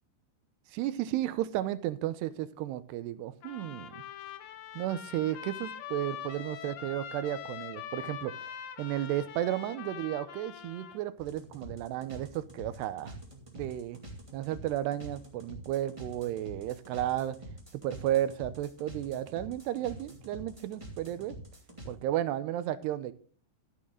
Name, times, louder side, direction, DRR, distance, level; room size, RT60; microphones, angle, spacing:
voice 1, 0.7-4.0 4.8-13.1 13.5-14.0 14.3-17.4 17.8-21.4 21.9-23.1, right 13 dB, 80° right, 14 dB, 2.7 m, -33 dB
Trumpet, 3.4-11.0, left 9 dB, 85° left, 3.5 m, -43 dB
sound 1, 11.2-21.9, right 1 dB, 10° right, 1.4 m, -46 dB
13.0 x 8.6 x 3.8 m, 0.41 s
omnidirectional pair, 5.1 m